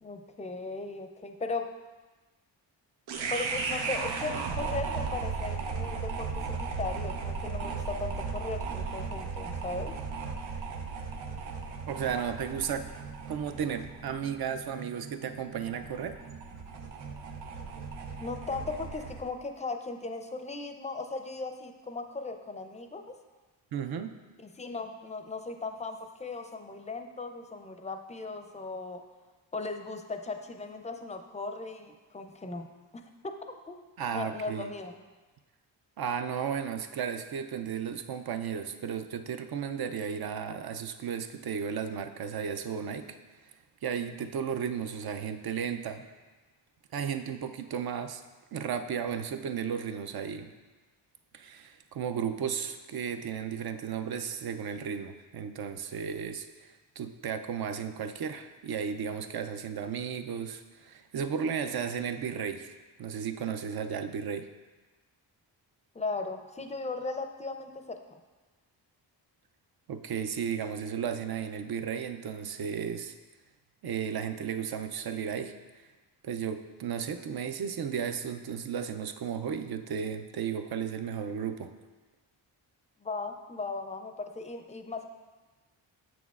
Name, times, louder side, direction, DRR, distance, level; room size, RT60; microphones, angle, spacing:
voice 1, 0.0-1.7 3.3-9.9 18.2-23.1 24.4-29.0 29.5-32.7 32.9-33.4 33.7-33.8 34.1-35.0 65.9-68.2 83.0-85.1, left 3 dB, 15° left, 6 dB, 0.5 m, -37 dB
sound 1, 3.1-19.3, right 5 dB, 90° right, 0.7 m, -36 dB
voice 2, 11.9-12.9 13.3-16.2 23.7-24.2 34.0-34.7 36.0-43.2 43.8-46.1 46.9-48.2 48.5-50.5 51.3-64.5 69.9-73.1 73.8-75.5 76.2-81.7, right 7 dB, 55° right, 8 dB, 0.5 m, -34 dB
6.9 x 6.0 x 2.4 m, 1.3 s
cardioid pair, 65°, 45 cm